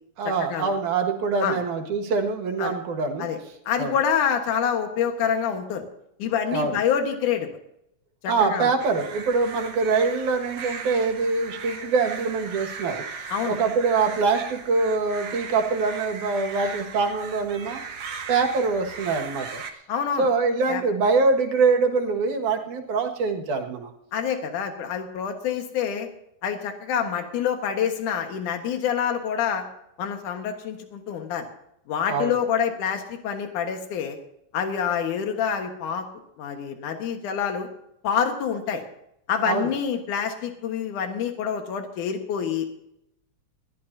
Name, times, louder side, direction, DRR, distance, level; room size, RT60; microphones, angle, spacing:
voice 1, 0.2-3.3 3.8-3.9 6.5-6.8 8.3-17.8 18.3-19.6 20.2-23.9 32.1-32.4 39.5-39.7, right 4 dB, 80° right, 3 dB, 3.2 m, -24 dB
voice 2, 3.7-5.8 6.2-7.5 8.2-8.7 13.3-13.6 19.9-20.3 20.7-20.8 24.1-26.1 26.4-29.6 30.0-31.5 31.9-34.2 34.5-36.1 36.4-37.7 38.0-38.8 39.3-42.7, left 8 dB, 85° left, 5 dB, 3.0 m, -26 dB
sound 1, 8.8-19.7, right 5 dB, 50° right, 1.8 m, -38 dB
21.0 x 15.0 x 2.7 m, 0.78 s
omnidirectional pair, 3.5 m